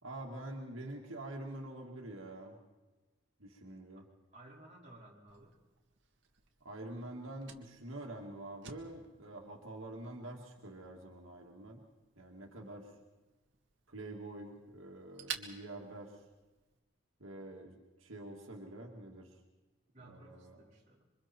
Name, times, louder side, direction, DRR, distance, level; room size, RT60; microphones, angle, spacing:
voice 1, 0.0-2.6 3.4-4.0 6.6-11.8 12.2-12.9 13.9-16.3 17.2-19.4 20.1-20.6, right 1 dB, 75° right, 0 dB, 2.4 m, -46 dB
voice 2, 4.3-5.5 19.9-21.0, right 1 dB, 35° right, -4 dB, 4.8 m, -56 dB
Fire, 5.3-16.8, right 8 dB, 60° right, 2.0 m, -53 dB
27.5 x 24.5 x 4.5 m, 1.1 s
head